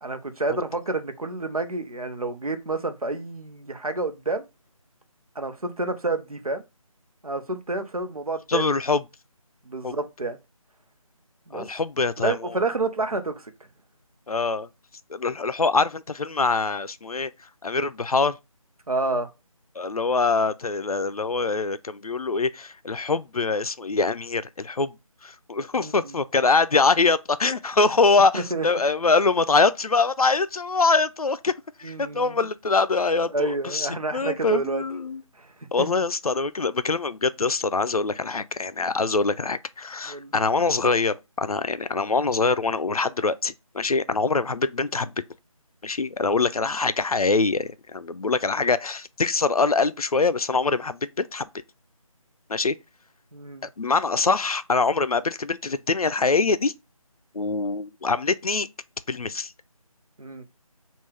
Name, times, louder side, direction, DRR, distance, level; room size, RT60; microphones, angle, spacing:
voice 1, 0.0-4.4 5.3-6.6 7.2-8.8 9.6-10.4 11.5-11.7 12.2-13.5 18.9-19.3 25.8-26.2 28.3-28.7 31.8-32.4 33.3-34.8 35.4-35.5 40.1-40.3 53.3-53.7 60.2-60.4, right 2 dB, 80° right, 0.9 m, -29 dB
voice 2, 8.5-9.0 9.8-9.9 11.5-12.3 14.3-14.7 15.1-17.3 17.6-18.4 19.8-24.9 25.2-31.5 31.8-35.2 35.7-45.1 45.8-51.5 52.5-52.7 53.8-56.7 57.3-58.7 59.1-59.5, left 4 dB, 80° left, 0.5 m, -24 dB
5.5 x 2.5 x 3.3 m
figure-of-eight pair, 160°, 19 cm